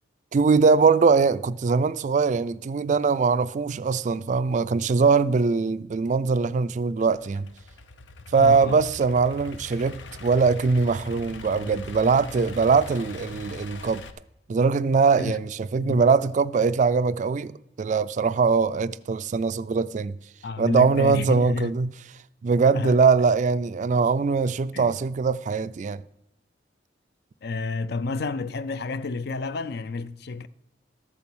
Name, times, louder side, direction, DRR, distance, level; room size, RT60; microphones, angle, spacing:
voice 1, 0.3-7.5 8.3-14.0 14.5-17.5 17.8-20.2 20.6-21.9 22.4-26.0, right 5 dB, 40° right, 0.3 m, -22 dB
Idling / Accelerating revving vroom, 7.0-14.1, left 3 dB, 85° left, 0.8 m, -41 dB
voice 2, 8.3-8.8 15.2-15.4 15.8-16.0 20.4-21.7 22.7-23.0 24.7-25.0 27.4-30.5, left 4 dB, 60° left, 0.4 m, -30 dB
13.5 x 7.0 x 6.1 m
head